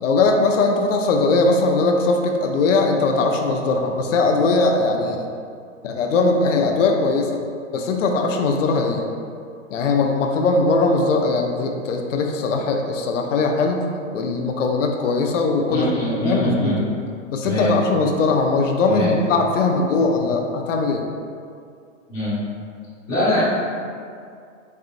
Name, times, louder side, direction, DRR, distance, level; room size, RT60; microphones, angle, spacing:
voice 1, 0.0-5.3 5.8-7.4 7.7-9.1 9.7-13.9 14.1-16.8 17.3-21.0, left 3 dB, 70° left, 2 dB, 0.6 m, -20 dB
voice 2, 15.7-16.8 17.4-17.7 18.9-19.1 22.1-22.3 23.1-23.4, equal, ahead, -23 dB, 0.4 m, -23 dB
4.3 x 3.5 x 2.5 m, 2.3 s
hypercardioid pair, 165°, 39 cm